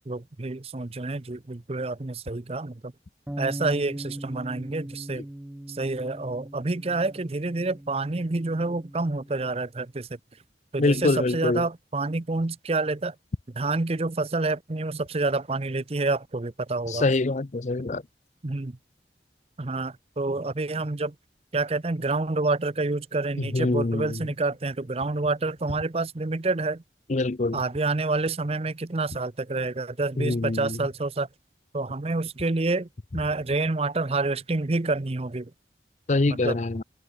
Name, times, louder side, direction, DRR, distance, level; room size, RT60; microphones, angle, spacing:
voice 1, 0.1-2.9 3.4-5.3 5.7-10.2 10.7-13.1 13.6-17.0 18.4-18.8 19.6-21.1 21.5-26.8 27.5-31.3 31.7-35.5 36.3-36.6, right 3 dB, 35° right, 0.7 m, -28 dB
Bass guitar, 3.3-9.5, right 1 dB, 10° right, 0.3 m, -40 dB
voice 2, 10.8-11.6 16.9-18.0 23.4-24.3 27.1-27.6 30.2-30.8 36.1-36.8, left 2 dB, 40° left, 0.6 m, -25 dB
head